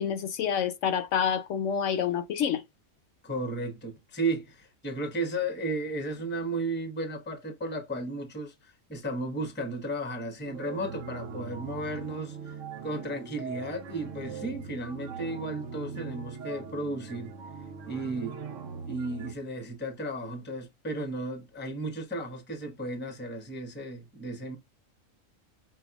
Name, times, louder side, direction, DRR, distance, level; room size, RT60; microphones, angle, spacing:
voice 1, 0.0-2.6, left 8 dB, 70° left, 0.9 m, -28 dB
voice 2, 3.2-17.3 17.9-18.4 18.9-24.6, right 1 dB, 10° left, 0.6 m, -34 dB
sound 1, 10.4-19.3, right 5 dB, 75° right, 1.0 m, -41 dB
5.5 x 2.2 x 2.3 m
omnidirectional pair, 1.4 m